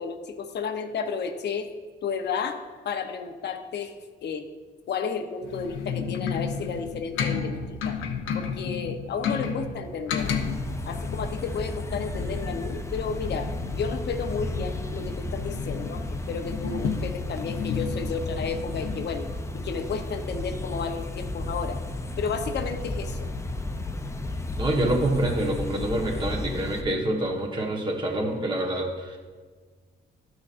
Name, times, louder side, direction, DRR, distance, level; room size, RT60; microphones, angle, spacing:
voice 1, 0.0-1.7 2.0-2.6 2.8-3.9 4.2-4.4 4.9-8.0 8.3-10.3 10.9-19.3 19.5-21.8 22.2-23.3, left 5 dB, 60° left, 6 dB, 0.8 m, -32 dB
sound 1, 5.4-19.0, left 6 dB, 85° left, 0.8 m, -33 dB
sound 2, 10.2-26.8, left 2 dB, 15° left, 0.5 m, -33 dB
voice 2, 24.6-29.2, right 1 dB, 25° right, -1 dB, 1.3 m, -26 dB
12.0 x 6.1 x 2.5 m, 1.4 s
cardioid pair, 90°, 20 cm